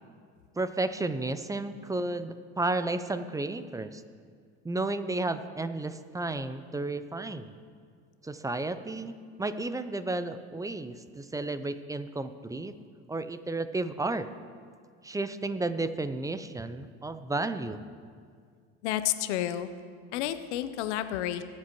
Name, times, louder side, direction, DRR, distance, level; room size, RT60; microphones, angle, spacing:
voice 1, 0.6-4.0 4.6-7.6 8.2-12.7 13.1-14.3 15.0-17.8, right 2 dB, 10° right, 12 dB, 0.5 m, -32 dB
voice 2, 18.8-19.7 20.1-21.4, left 12 dB, 80° left, 11 dB, 0.8 m, -30 dB
20.0 x 7.6 x 3.0 m, 2.1 s
supercardioid pair, 85°, 34 cm